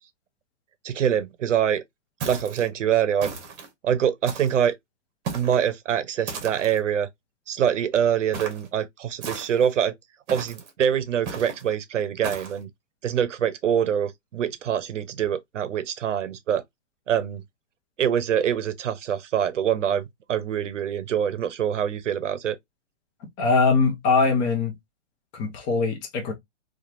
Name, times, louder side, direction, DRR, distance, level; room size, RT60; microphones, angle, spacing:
voice 1, 0.8-1.8 2.2-3.3 3.8-4.8 5.3-7.1 7.5-9.9 10.3-12.7 13.0-16.6 17.1-17.4 18.0-20.0 20.3-22.6, right 9 dB, 85° right, 0.6 m, -24 dB
sound 1, 2.2-2.7 3.2-3.7 4.3-4.7 5.2-5.6 6.3-6.8 8.3-8.7 9.2-9.7 10.3-10.7 11.3-11.6 12.2-12.6, right 5 dB, 40° right, 1.0 m, -35 dB
voice 2, 23.4-24.7 25.3-26.3, left 4 dB, 25° left, 0.7 m, -22 dB
3.0 x 2.3 x 2.4 m
hypercardioid pair, 135°, 36 cm